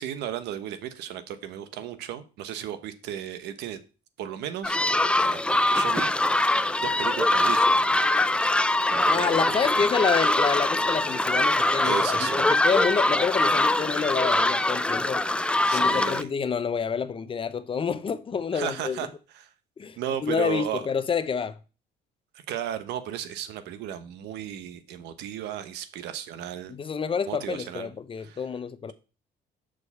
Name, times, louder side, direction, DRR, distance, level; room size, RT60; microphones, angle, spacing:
voice 1, 0.0-3.8 4.2-4.8 5.2-7.8 8.9-9.9 11.8-12.6 15.7-16.3 18.5-19.1 19.3-19.5 20.0-20.8 22.5-26.7 27.3-27.9 28.2-28.4, right 10 dB, 85° right, 1.0 m, -35 dB
sound 1, 4.6-16.2, left 2 dB, 5° left, 0.4 m, -23 dB
voice 2, 9.1-15.2 15.7-19.0 19.8-21.6 26.7-28.9, left 6 dB, 30° left, 0.7 m, -28 dB
6.4 x 5.0 x 6.9 m
cardioid pair, 110°, 17 cm